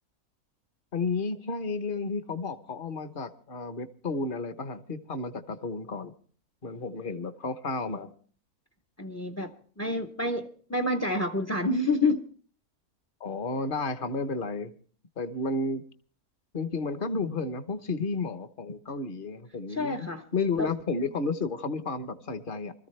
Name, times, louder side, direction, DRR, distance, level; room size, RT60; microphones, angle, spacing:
voice 1, 0.9-6.1 6.6-8.1 13.2-14.7 15.2-15.8 16.5-22.7, left 3 dB, 40° left, 1.1 m, -32 dB
voice 2, 9.0-9.5 9.8-12.2 19.7-20.2 20.6-20.7, left 2 dB, 20° left, 0.5 m, -28 dB
24.5 x 14.0 x 3.3 m
omnidirectional pair, 1.5 m